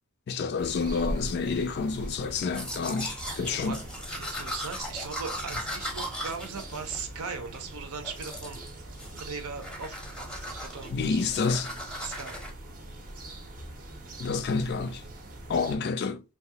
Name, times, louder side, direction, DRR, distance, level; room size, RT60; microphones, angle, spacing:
voice 1, 0.3-3.8 10.9-11.7 14.2-15.0 15.5-16.2, left 4 dB, 50° left, 0.3 m, -29 dB
sound 1, 0.6-15.8, right 1 dB, 35° right, 0.6 m, -42 dB
Domestic sounds home sounds, 2.4-7.6 8.0-8.7 9.0-9.3 9.6-12.5, equal, 5° left, 0.6 m, -38 dB
voice 2, 4.1-8.6 9.2-11.6 12.0-12.4, right 5 dB, 80° right, 0.7 m, -39 dB
2.9 x 2.3 x 2.7 m
head